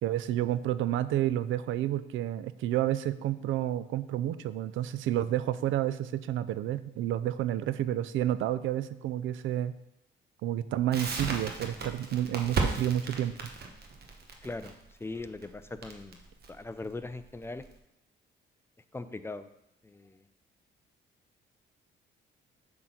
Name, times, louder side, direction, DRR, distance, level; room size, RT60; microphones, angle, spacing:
voice 1, 0.0-9.7 10.4-13.3, right 12 dB, 80° right, 14 dB, 0.4 m, -30 dB
Crackle, 10.9-17.7, right 4 dB, 55° right, 1.2 m, -35 dB
voice 2, 14.4-14.7 15.0-16.2 16.5-17.6 18.9-19.5 19.8-20.3, left 3 dB, 10° left, 11 dB, 0.5 m, -40 dB
7.7 x 3.9 x 5.8 m, 0.82 s
cardioid pair, 90°, 20 cm